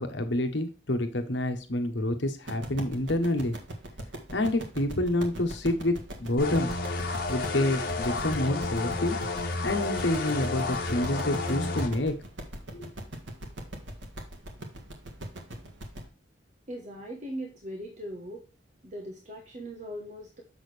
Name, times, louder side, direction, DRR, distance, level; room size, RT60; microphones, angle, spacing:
voice 1, 0.0-3.5 4.3-6.7 7.3-9.2 9.6-12.1 12.7-12.9, left 1 dB, 70° left, 6 dB, 1.2 m, -28 dB
sound 1, 2.4-16.0, right 1 dB, 75° right, 1.8 m, -40 dB
sound 2, 6.4-11.9, left 3 dB, 55° left, 1.4 m, -31 dB
voice 2, 16.7-18.5 18.8-20.4, equal, 40° right, 1 dB, 1.2 m, -39 dB
7.5 x 6.4 x 3.3 m, 0.33 s
head